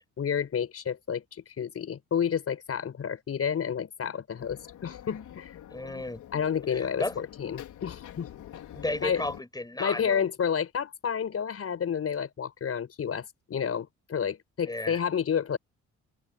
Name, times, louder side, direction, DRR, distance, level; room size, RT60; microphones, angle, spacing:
voice 1, 0.2-5.5 6.3-8.6 9.0-9.2 9.8-15.6, left 7 dB, 50° left, 5.4 m, -30 dB
sound 1, 4.4-9.4, left 11 dB, 80° left, 4.7 m, -45 dB
voice 2, 5.7-6.2 6.7-7.2 8.7-10.3 14.6-15.0, left 2 dB, 15° left, 7.4 m, -33 dB
cardioid pair, 90°, 30 cm